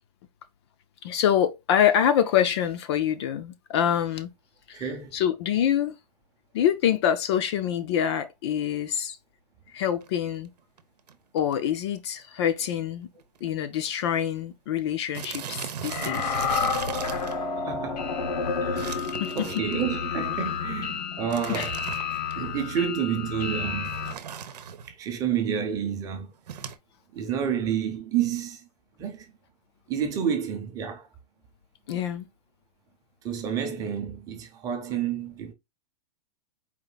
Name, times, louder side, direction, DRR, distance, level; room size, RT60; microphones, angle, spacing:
voice 1, 1.0-4.3 4.7-5.9 6.5-9.2 9.7-10.5 11.3-13.1 13.4-16.4 18.9-19.5 21.5-21.7 31.9-32.3, left 9 dB, 45° left, 0.6 m, -26 dB
voice 2, 4.7-5.1 16.9-17.3 17.6-18.1 18.6-19.0 19.3-21.8 22.3-24.0 24.9-26.3 27.1-28.6 29.0-29.3 29.9-31.1 33.2-35.5, right 8 dB, 15° right, 0.7 m, -29 dB
sound 1, 9.8-10.1 10.8-10.9 11.1-11.2 11.4-11.7 12.0-12.2 12.5-12.6 13.4-13.5 13.7-13.9 14.2-14.3 15.1-17.4 18.8-19.9 21.3-22.3 23.8-24.9 26.5-26.8, right 8 dB, 90° right, 0.8 m, -37 dB
sound 2, 15.9-24.1, left 5 dB, 85° left, 1.2 m, -30 dB
4.3 x 2.6 x 3.9 m
supercardioid pair, 165°, 20 cm